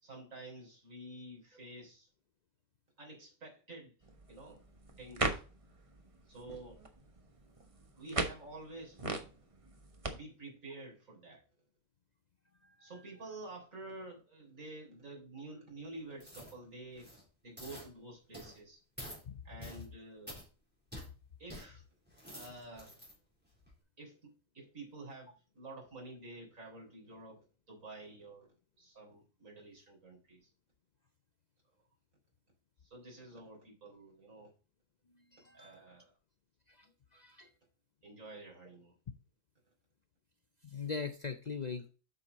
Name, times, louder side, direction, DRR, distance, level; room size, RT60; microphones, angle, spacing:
voice 1, 0.0-2.1 3.0-3.9 4.3-4.6 5.0-5.4 6.3-6.8 8.0-9.0 10.1-11.4 12.8-17.1 17.4-18.8 19.4-20.4 21.4-21.8 22.3-23.0 24.0-28.5 28.8-30.5 32.8-34.5 35.5-36.1 38.0-38.9, right 2 dB, 80° right, 4.1 m, -50 dB
sound 1, 4.0-10.1, right 2 dB, 25° right, 1.1 m, -40 dB
sound 2, 16.2-16.6 16.9-17.2 17.6-17.9 18.3-18.6 19.0-19.2 19.6-19.9 20.3-20.5 20.9-21.1 21.5-21.7 22.1-23.1 23.6-23.7, equal, 5° right, 3.5 m, -48 dB
voice 2, 35.3-35.8 36.8-36.9 37.1-37.5 40.6-41.9, left 5 dB, 45° left, 0.5 m, -41 dB
7.9 x 6.1 x 4.0 m
omnidirectional pair, 1.4 m